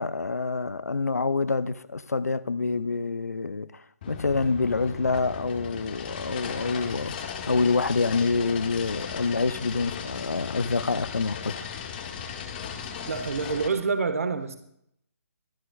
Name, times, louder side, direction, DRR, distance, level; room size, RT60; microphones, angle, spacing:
voice 1, 0.0-3.7 4.1-11.7, left 4 dB, 85° left, 0.6 m, -27 dB
sound 1, 4.0-13.7, left 7 dB, 35° left, 1.7 m, -37 dB
voice 2, 13.1-14.6, right 5 dB, 65° right, 1.5 m, -27 dB
23.0 x 12.5 x 2.4 m
figure-of-eight pair, 145°, 8 cm